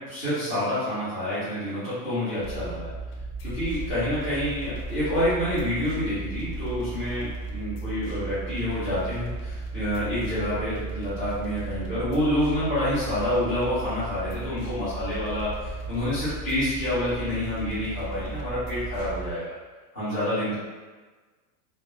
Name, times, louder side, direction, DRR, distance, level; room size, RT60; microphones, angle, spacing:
voice 1, 0.0-2.9 3.4-19.5 19.9-20.5, left 1 dB, 15° left, -16 dB, 0.4 m, -28 dB
sound 1, 2.4-19.3, right 2 dB, 70° left, 0.6 m, -35 dB
2.3 x 2.1 x 2.9 m, 1.3 s
supercardioid pair, 175°, 48 cm